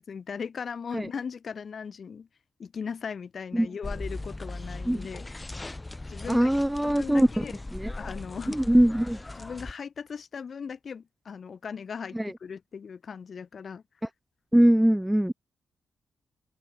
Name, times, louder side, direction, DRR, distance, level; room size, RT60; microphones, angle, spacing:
voice 1, 0.0-2.3 2.6-5.3 6.1-6.5 6.8-7.6 8.0-8.7 9.4-13.8, left 6 dB, 50° left, 5.5 m, -38 dB
sound 1, 3.8-9.7, left 2 dB, 15° left, 3.7 m, -39 dB
voice 2, 6.3-7.3 8.5-9.2 12.2-12.3 14.5-15.3, right 1 dB, 5° right, 0.6 m, -21 dB
open air
cardioid pair, 100°, 0 cm